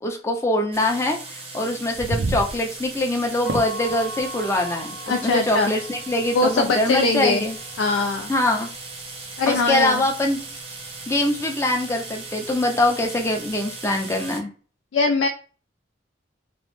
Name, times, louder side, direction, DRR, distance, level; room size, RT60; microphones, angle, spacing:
voice 1, 0.0-7.6 8.3-8.7 9.5-10.4 11.1-14.5, left 1 dB, 15° left, 2 dB, 0.5 m, -23 dB
sound 1, 0.7-14.4, right 3 dB, 30° right, 0.6 m, -38 dB
sound 2, 1.7-13.8, right 2 dB, 70° right, 0.4 m, -37 dB
sound 3, 3.4-9.3, right 1 dB, 85° right, 1.1 m, -40 dB
voice 2, 5.1-5.7 6.3-7.4 7.8-8.3 9.4-10.0 14.9-15.3, left 3 dB, 80° left, 4 dB, 0.3 m, -21 dB
3.0 x 2.0 x 3.0 m, 0.38 s
head